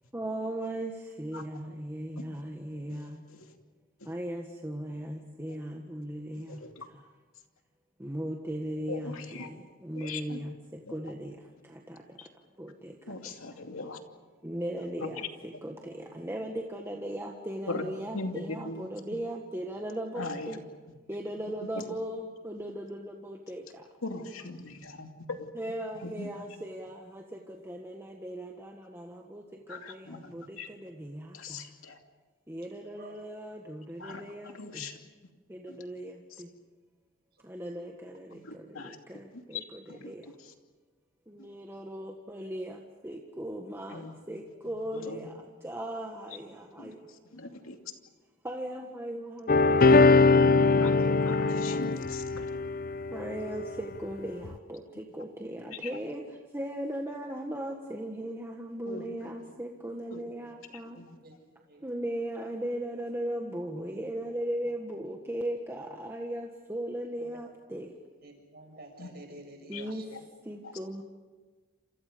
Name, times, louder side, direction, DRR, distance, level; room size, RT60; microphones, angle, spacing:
voice 1, 0.1-3.3 4.0-7.1 8.0-12.3 12.6-13.6 14.4-20.6 21.1-23.9 25.5-31.7 32.5-35.0 35.5-36.5 37.4-40.3 41.3-47.8 48.4-51.8 53.1-61.0 61.8-67.9 69.7-71.0, right 1 dB, 10° right, 1 dB, 1.6 m, -38 dB
voice 2, 8.9-9.5 10.0-10.4 10.9-11.0 12.2-12.3 13.1-14.0 15.0-15.1 17.7-17.9 18.1-18.9 20.2-20.6 21.8-21.9 24.0-25.5 26.0-26.3 29.7-30.7 31.3-32.0 34.0-34.2 34.6-35.0 35.7-35.8 38.3-39.0 39.9-40.1 43.9-44.1 45.1-45.2 46.8-46.9 47.3-47.7 50.8-52.5 58.9-59.0 60.1-60.2 61.0-61.1 69.0-69.1 69.7-69.8, left 3 dB, 85° left, 4 dB, 2.6 m, -40 dB
sound 1, 49.5-53.6 54.4-54.5, left 3 dB, 45° left, 0.6 m, -22 dB
voice 3, 68.2-70.2, right 1 dB, 50° right, 3 dB, 6.3 m, -49 dB
29.0 x 27.5 x 5.2 m, 1.4 s
head